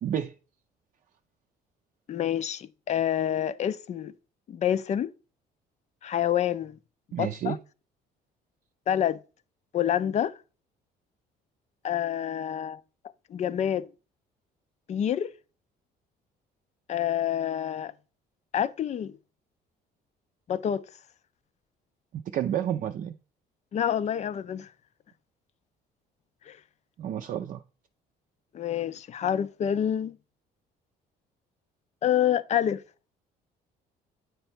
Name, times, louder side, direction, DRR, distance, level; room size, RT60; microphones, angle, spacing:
voice 1, 0.0-0.3 7.1-7.6 22.1-23.2 27.0-27.6, right 10 dB, 50° right, 0.5 m, -30 dB
voice 2, 2.1-4.1 4.5-5.1 6.0-6.8 7.2-7.6 8.9-9.2 9.7-10.3 11.8-12.8 13.3-13.9 14.9-15.3 16.9-17.9 18.5-19.2 20.5-20.8 23.7-24.7 26.5-26.6 28.5-30.2 32.0-32.8, left 10 dB, 45° left, 0.4 m, -27 dB
8.7 x 3.3 x 4.3 m
cardioid pair, 110°, 17 cm